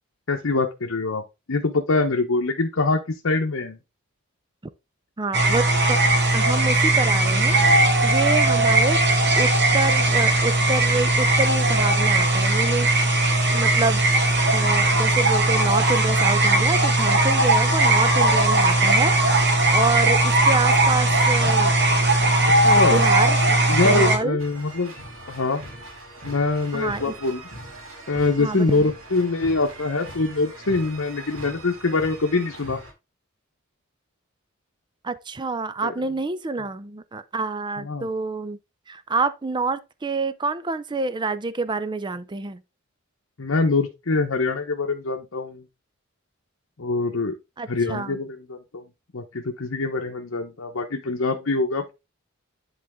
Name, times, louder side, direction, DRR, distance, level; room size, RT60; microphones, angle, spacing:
voice 1, 0.3-1.2 1.5-3.8 8.5-8.6 22.8-23.0 23.7-24.9 25.3-25.6 26.2-27.4 28.1-32.8 35.8-35.9 36.6-36.7 37.8-38.1 43.4-45.6 46.8-47.3 47.7-48.8 49.1-51.9, left 3 dB, 70° left, 1.0 m, -24 dB
voice 2, 5.2-6.0 6.3-7.6 8.0-9.0 9.4-12.9 13.5-14.1 14.5-21.8 22.6-23.4 23.8-24.4 26.7-27.1 28.4-28.9 35.0-38.6 38.9-42.6 47.6-48.2, right 3 dB, 20° right, 0.5 m, -27 dB
sound 1, 5.3-24.2, right 2 dB, 55° right, 1.9 m, -19 dB
sound 2, 24.4-32.9, right 1 dB, 80° right, 2.8 m, -41 dB
10.5 x 4.1 x 3.6 m
head